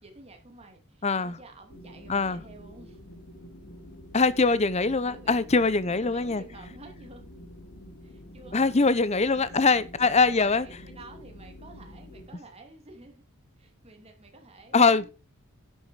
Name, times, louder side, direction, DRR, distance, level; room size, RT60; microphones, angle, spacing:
voice 1, 0.0-3.0 5.0-5.6 5.9-7.3 8.0-8.8 9.3-9.7 10.0-13.2 13.6-15.1, right 2 dB, 25° right, 2.5 m, -50 dB
voice 2, 1.0-1.4 2.1-2.4 4.1-6.4 8.5-10.7 14.7-15.1, left 4 dB, 30° left, 0.7 m, -22 dB
sound 1, 1.7-12.3, left 1 dB, 85° left, 2.4 m, -47 dB
11.0 x 7.1 x 4.8 m
head